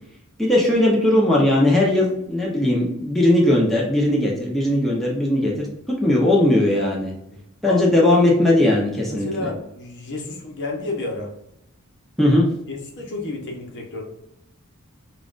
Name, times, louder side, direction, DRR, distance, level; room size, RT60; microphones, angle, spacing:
voice 1, 0.4-7.1 7.6-9.5 12.2-12.5, left 1 dB, ahead, -5 dB, 0.9 m, -18 dB
voice 2, 7.6-8.0 9.1-11.3 12.7-14.0, left 2 dB, 55° left, 1 dB, 1.0 m, -31 dB
5.6 x 2.5 x 2.5 m, 0.80 s
head